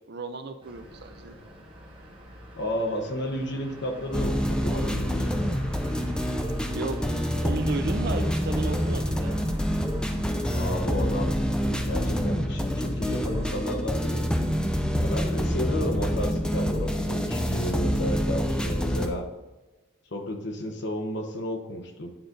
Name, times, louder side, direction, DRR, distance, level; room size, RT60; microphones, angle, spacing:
voice 1, 0.1-1.4 6.7-7.0 7.4-9.4, right 3 dB, 50° right, 9 dB, 0.5 m, -34 dB
sound 1, 0.6-13.6, equal, 25° right, 1.3 m, -45 dB
voice 2, 2.5-5.3 10.5-11.3 11.7-14.2 15.0-19.3 20.1-22.1, left 1 dB, 55° left, 4 dB, 0.9 m, -32 dB
sound 2, 4.1-19.1, equal, 5° left, 0.4 m, -27 dB
8.7 x 3.9 x 3.8 m, 1.1 s
head